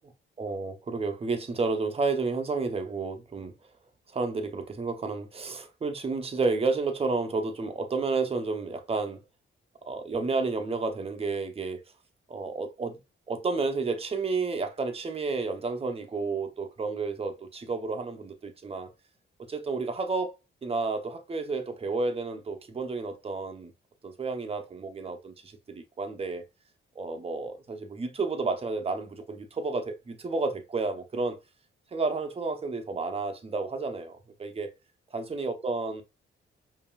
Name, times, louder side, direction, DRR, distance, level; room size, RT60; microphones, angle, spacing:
voice 1, 0.4-3.5 4.1-9.2 9.9-11.8 12.3-13.0 13.3-18.9 19.5-23.7 24.0-26.4 27.0-31.4 31.9-34.7 35.1-36.0, right 3 dB, 30° right, 0.7 m, -31 dB
5.3 x 2.7 x 2.3 m
wide cardioid pair, 135°, 21 cm